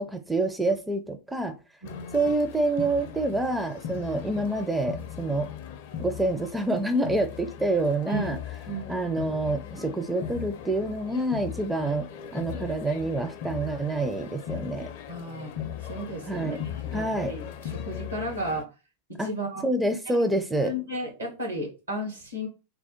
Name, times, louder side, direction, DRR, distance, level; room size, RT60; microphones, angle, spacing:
voice 1, 0.0-1.6 2.1-5.5 6.0-8.4 8.9-14.9 16.3-16.6 16.9-17.4 19.2-19.3 19.6-20.7, right 2 dB, 10° right, 7 dB, 0.4 m, -27 dB
sound 1, 1.8-18.6, left 8 dB, 50° left, 0.4 m, -38 dB
voice 2, 1.8-2.3 3.9-4.3 8.1-8.4 8.7-9.1 11.7-12.0 15.1-15.5 15.8-18.7 19.2-19.7 20.3-22.5, right 1 dB, 80° right, 0 dB, 1.7 m, -34 dB
3.4 x 2.1 x 4.2 m, 0.30 s
figure-of-eight pair, 90°, 0 cm